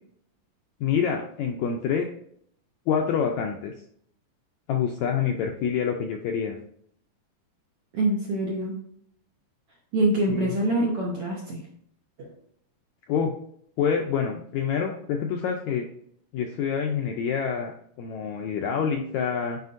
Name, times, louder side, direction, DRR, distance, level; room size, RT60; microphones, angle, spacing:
voice 1, 0.8-2.1 2.9-3.7 4.7-6.6 10.3-10.5 13.1-13.3 13.8-15.9 16.3-19.6, left 7 dB, 85° left, 2 dB, 1.7 m, -27 dB
voice 2, 7.9-8.7 9.9-11.6 12.2-12.3, right 1 dB, 65° right, -2 dB, 1.5 m, -25 dB
8.0 x 5.1 x 2.6 m, 0.64 s
omnidirectional pair, 3.9 m